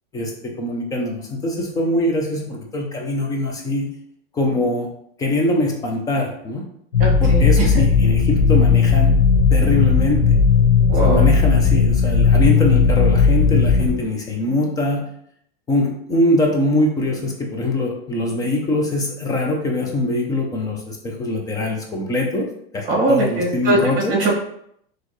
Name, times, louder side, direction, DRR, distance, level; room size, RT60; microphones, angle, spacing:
voice 1, 0.6-3.9 4.3-4.9 5.2-6.6 7.2-9.1 9.5-10.3 11.0-15.1 15.7-22.5 22.7-24.1, left 1 dB, 10° left, 0 dB, 0.5 m, -22 dB
sound 1, 6.9-13.9, left 5 dB, 90° left, 1.3 m, -15 dB
voice 2, 7.0-7.7 10.9-11.2 22.9-23.8 24.1-24.4, right 2 dB, 25° right, -3 dB, 1.6 m, -20 dB
4.2 x 3.1 x 3.1 m, 0.70 s
supercardioid pair, 155°, 31 cm